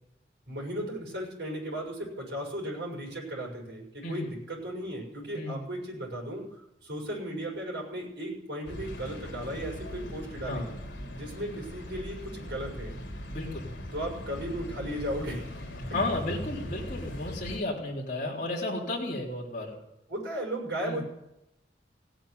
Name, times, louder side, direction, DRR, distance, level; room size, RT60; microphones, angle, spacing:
voice 1, 0.5-10.7 11.1-13.0 13.9-15.8 20.1-21.0, right 1 dB, 65° right, -1 dB, 6.5 m, -36 dB
sound 1, 8.7-17.6, left 1 dB, 70° left, 3.9 m, -40 dB
voice 2, 13.3-13.7 15.8-19.7 20.8-21.0, left 2 dB, 40° left, -5 dB, 3.8 m, -33 dB
16.5 x 8.9 x 9.6 m, 0.87 s
head